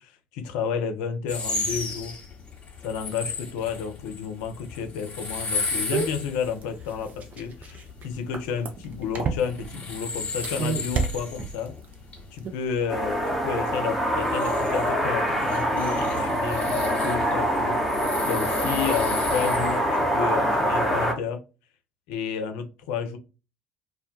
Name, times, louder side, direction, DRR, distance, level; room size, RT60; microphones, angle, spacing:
voice 1, 0.0-2.2 2.8-11.7 12.3-21.4 22.1-23.2, left 6 dB, 65° left, 0.4 m, -31 dB
sound 1, 1.3-19.8, left 3 dB, 35° left, 0.9 m, -35 dB
sound 2, 5.9-9.8 10.3-11.9 12.2-12.5, right 5 dB, 40° right, 0.5 m, -30 dB
sound 3, 12.9-21.1, equal, ahead, 0.7 m, -25 dB
2.1 x 2.1 x 2.7 m
figure-of-eight pair, 60°, 4 cm